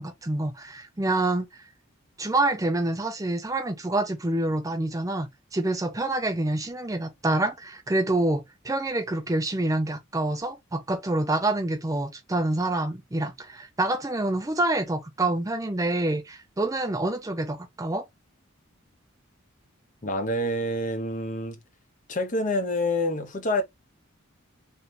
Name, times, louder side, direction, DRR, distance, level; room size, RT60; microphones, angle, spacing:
voice 1, 0.0-1.7 2.2-18.1, right 2 dB, 15° right, 0.5 m, -27 dB
voice 2, 20.0-21.6 22.1-23.6, left 1 dB, 40° left, 0.8 m, -27 dB
3.2 x 2.7 x 3.9 m
head